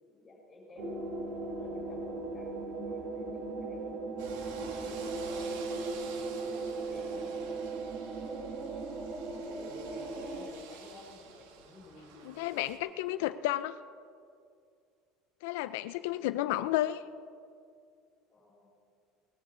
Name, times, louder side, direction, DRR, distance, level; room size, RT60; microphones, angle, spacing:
voice 1, 0.1-1.1 1.6-4.0 4.8-7.6 9.5-13.3 18.3-18.7, left 2 dB, 15° left, -4 dB, 4.2 m, -53 dB
sound 1, 0.8-10.5, right 3 dB, 35° right, 1.5 m, -37 dB
sound 2, 4.2-12.8, right 5 dB, 80° right, 1.6 m, -50 dB
voice 2, 12.3-13.8 15.4-17.0, left 14 dB, 90° left, 12 dB, 0.4 m, -32 dB
18.5 x 13.5 x 3.8 m, 2.3 s
cardioid pair, 175°, 0 cm